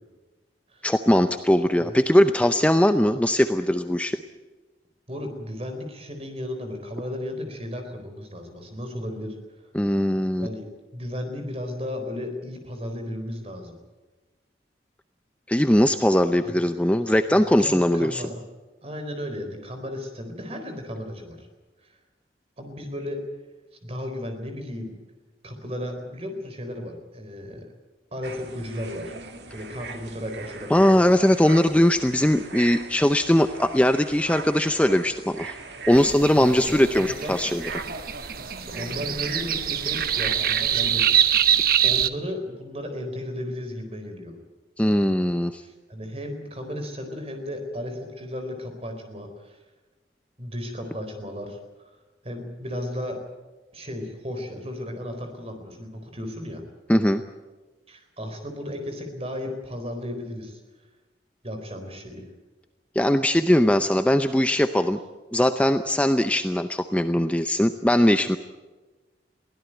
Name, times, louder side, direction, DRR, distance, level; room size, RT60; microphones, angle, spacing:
voice 1, 0.8-4.2 9.7-10.5 15.5-18.2 30.7-35.6 35.9-37.6 44.8-45.6 56.9-57.2 63.0-65.0 65.3-68.4, left 1 dB, 10° left, 9 dB, 0.6 m, -20 dB
voice 2, 5.1-9.4 10.4-10.7 10.9-13.8 16.5-16.6 17.1-18.4 18.8-21.5 21.8-22.0 22.6-23.2 23.8-24.9 25.4-27.7 28.1-29.1 29.5-31.1 36.4-37.3 38.6-41.3 41.8-44.4 45.6-49.6 50.4-51.6 52.2-53.2 53.7-56.6 57.9-60.6 61.4-62.2, left 1 dB, 35° right, 6 dB, 4.3 m, -34 dB
sound 1, 28.2-41.2, right 4 dB, 75° right, 2.1 m, -39 dB
birds on the lake, 35.9-42.1, right 10 dB, 55° right, 1.0 m, -24 dB
23.0 x 16.5 x 9.1 m, 1.2 s
head